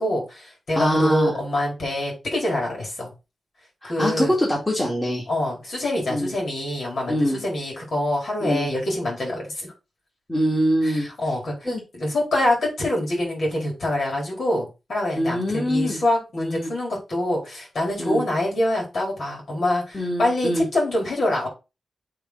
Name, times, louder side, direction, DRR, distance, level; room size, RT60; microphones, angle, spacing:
voice 1, 0.0-3.1 3.8-4.3 5.3-9.7 10.8-11.5 11.9-21.5, left 1 dB, 55° left, -2 dB, 4.1 m, -25 dB
voice 2, 0.8-1.4 3.8-5.3 6.1-6.3 7.1-7.4 8.4-8.7 10.3-11.1 11.6-11.8 15.2-16.0 16.4-16.7 18.0-18.2 19.9-20.7, equal, 15° left, -4 dB, 2.3 m, -23 dB
7.9 x 3.8 x 4.1 m, 0.28 s
wide cardioid pair, 150°, 0 cm